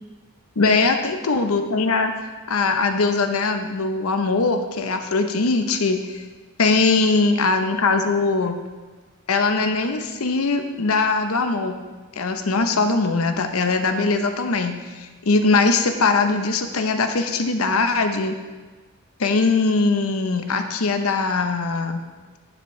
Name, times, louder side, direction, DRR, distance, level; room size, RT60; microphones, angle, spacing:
voice 1, 0.6-2.1 2.5-6.2 6.6-8.6 9.3-11.8 12.2-18.4 19.2-22.0, left 3 dB, 80° left, 7 dB, 0.8 m, -21 dB
11.0 x 7.1 x 3.2 m, 1.3 s
head